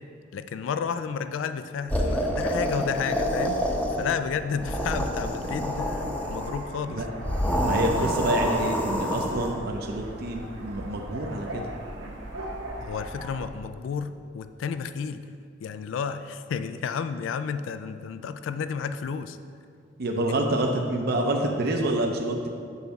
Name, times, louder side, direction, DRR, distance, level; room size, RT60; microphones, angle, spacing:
voice 1, 0.3-3.6 4.0-7.0 12.8-15.2 15.6-19.4, left 6 dB, 75° left, 12 dB, 0.3 m, -32 dB
sound 1, 1.9-4.2 4.5-6.6 7.2-9.5, equal, 10° left, 0.7 m, -27 dB
sound 2, 2.3-13.5, right 1 dB, 75° right, 1.1 m, -39 dB
voice 2, 7.6-11.6 20.0-22.5, right 1 dB, 55° right, 2 dB, 0.6 m, -27 dB
7.1 x 4.0 x 5.8 m, 2.3 s
head